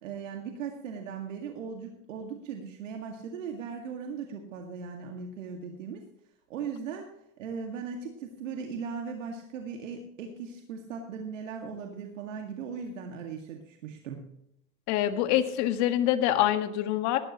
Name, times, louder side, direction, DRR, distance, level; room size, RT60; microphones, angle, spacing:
voice 1, 0.0-6.1 6.5-7.1 7.4-14.3, right 6 dB, 80° right, 3 dB, 2.0 m, -38 dB
voice 2, 14.9-17.2, left 12 dB, 50° left, 8 dB, 1.7 m, -25 dB
18.5 x 12.0 x 3.0 m, 0.79 s
hypercardioid pair, 115°, 38 cm